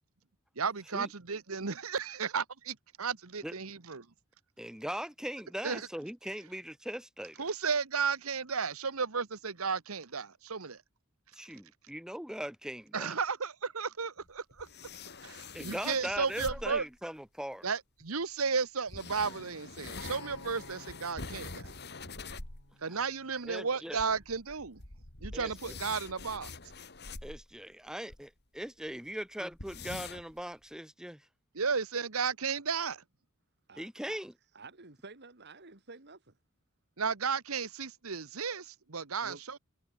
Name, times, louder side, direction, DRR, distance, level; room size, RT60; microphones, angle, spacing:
voice 1, 0.6-4.1 5.6-5.9 7.4-10.8 12.9-14.7 15.2-16.8 17.6-21.7 22.8-24.8 25.2-26.5 31.5-33.0 37.0-39.6, right 5 dB, 85° right, 1.3 m, -34 dB
voice 2, 4.6-7.4 11.3-13.1 15.5-17.7 22.9-23.0 23.4-24.0 25.3-25.8 27.2-28.3 28.5-31.2 33.8-34.3, equal, 5° right, 1.1 m, -40 dB
sound 1, 14.2-17.0 18.0-18.1 18.9-22.7 23.0-23.1 23.4-23.5 23.9-28.2 28.6-28.7 28.9-29.0 29.5-30.4, left 3 dB, 50° left, 4.0 m, -45 dB
Acoustic guitar, 20.0-24.2 25.1-25.2, left 3 dB, 75° left, 6.1 m, -54 dB
voice 3, 34.5-36.3 39.2-39.4, right 3 dB, 55° right, 2.8 m, -50 dB
head